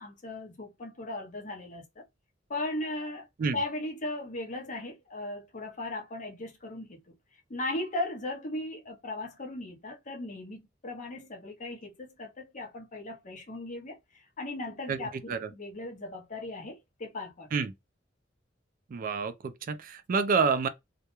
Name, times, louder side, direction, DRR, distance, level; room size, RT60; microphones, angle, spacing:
voice 1, 0.0-2.0 2.5-3.3 3.5-7.0 7.5-14.0 14.4-17.5, left 2 dB, 40° left, 0.7 m, -37 dB
voice 2, 18.9-20.7, right 5 dB, 45° right, 0.3 m, -28 dB
2.3 x 2.0 x 2.9 m
head